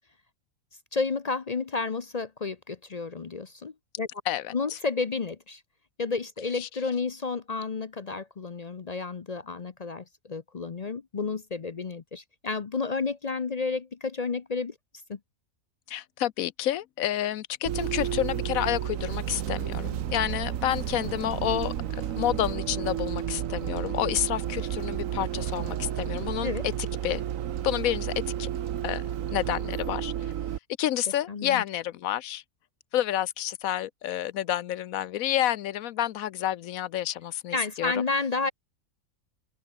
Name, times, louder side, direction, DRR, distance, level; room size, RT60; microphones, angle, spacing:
voice 1, 0.9-4.1 4.5-5.6 6.0-14.7 15.1-15.2 26.4-26.7 31.3-31.6 37.5-38.5, left 4 dB, 40° left, 0.6 m, -31 dB
voice 2, 15.9-26.7 27.0-27.2 27.6-28.1 28.4-28.5 28.8-29.0 29.3-30.1 30.8-32.4 32.9-38.0, left 12 dB, 80° left, 1.0 m, -29 dB
Bus, 17.6-30.6, right 10 dB, 70° right, 1.2 m, -32 dB
omnidirectional pair, 1.5 m